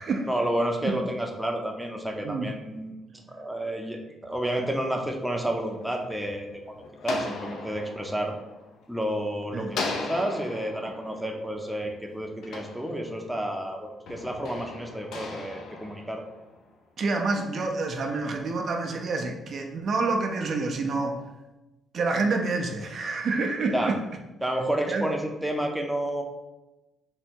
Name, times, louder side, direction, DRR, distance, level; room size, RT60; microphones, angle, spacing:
voice 1, 0.3-6.7 7.0-8.3 8.9-16.2 23.7-23.9 24.4-26.2, right 1 dB, 5° right, 1 dB, 0.6 m, -30 dB
sound 1, 5.5-9.2 9.7-13.5 14.1-16.7, left 3 dB, 75° left, 0.6 m, -38 dB
voice 2, 9.5-9.8 17.0-21.2 21.9-24.0 24.9-25.1, right 3 dB, 55° right, 3 dB, 0.5 m, -28 dB
3.7 x 2.1 x 4.3 m, 1.0 s
cardioid pair, 90°, 0 cm